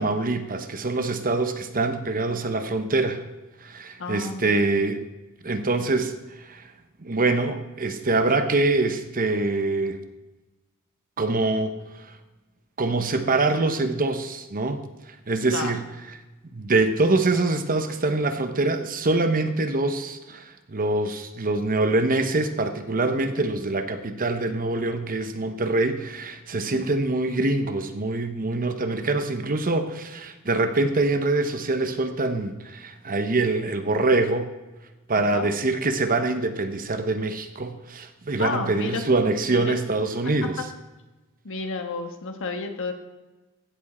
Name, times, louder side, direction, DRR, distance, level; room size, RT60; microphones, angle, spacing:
voice 1, 0.0-3.2 3.6-5.0 5.4-6.6 7.0-10.0 11.2-12.1 12.8-15.8 16.5-34.5 35.1-40.6, right 2 dB, 40° right, 8 dB, 0.9 m, -24 dB
voice 2, 4.0-4.6 15.5-15.7 26.7-26.8 35.1-35.5 38.4-39.0 39.5-39.8 41.4-42.9, left 4 dB, 60° left, 6 dB, 1.4 m, -31 dB
16.0 x 7.3 x 4.3 m, 1.1 s
head